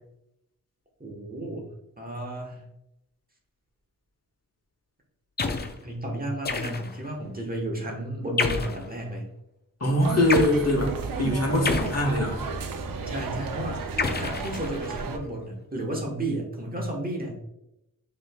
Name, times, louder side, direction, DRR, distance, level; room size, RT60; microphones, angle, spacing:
voice 1, 1.0-1.7 2.0-2.6 5.8-9.2 13.1-17.4, right 1 dB, 25° right, 0 dB, 1.1 m, -33 dB
sound 1, 5.4-5.8 6.4-7.1 8.4-8.9 10.3-10.6 11.6-12.5 14.0-15.0, left 4 dB, 30° left, 0.5 m, -29 dB
voice 2, 9.8-12.4, left 1 dB, 50° left, 0 dB, 1.3 m, -23 dB
sound 2, 10.0-15.2, right 4 dB, 85° right, 0.6 m, -33 dB
6.2 x 3.0 x 2.3 m, 0.84 s
cardioid pair, 65°, 33 cm